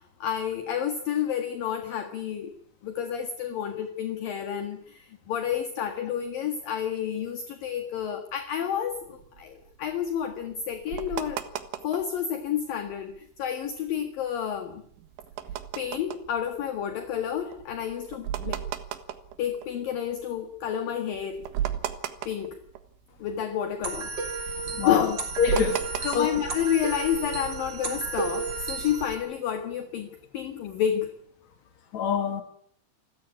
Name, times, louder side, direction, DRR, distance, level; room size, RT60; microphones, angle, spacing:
voice 1, 0.0-2.5 2.8-11.4 11.8-14.8 15.8-18.6 19.4-21.4 22.3-22.6 23.2-24.1 24.7-25.2 25.5-25.6 26.0-31.1, left 9 dB, 55° left, 3.0 m, -30 dB
sound 1, 9.0-12.2 12.6-12.7 12.9-13.2 13.6-20.3 20.8-20.9 21.1-23.3 23.5-26.5, right 11 dB, 70° right, 3.6 m, -35 dB
sound 2, 23.8-29.1, right 4 dB, 25° right, 4.0 m, -32 dB
voice 2, 24.8-25.1 25.4-26.4 31.9-32.4, left 7 dB, 40° left, 3.6 m, -25 dB
28.5 x 15.5 x 9.8 m
omnidirectional pair, 5.5 m